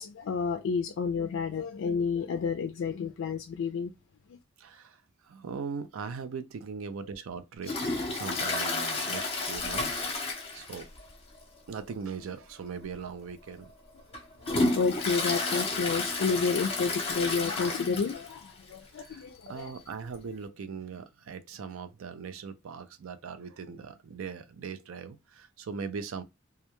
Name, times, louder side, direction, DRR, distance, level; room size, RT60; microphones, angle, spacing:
voice 1, 0.0-3.9 14.4-19.7, left 5 dB, 65° left, 0.3 m, -30 dB
voice 2, 4.6-7.8 8.1-10.9 11.7-13.7 19.0-26.2, right 5 dB, 80° right, 0.4 m, -40 dB
Toilet flush, 7.6-11.1 11.3-11.4 11.9-12.0 12.8-12.9 13.5-18.4 18.7-18.8 19.0-19.1 20.1-20.2, left 2 dB, 30° left, 0.7 m, -31 dB
2.3 x 2.2 x 2.9 m
head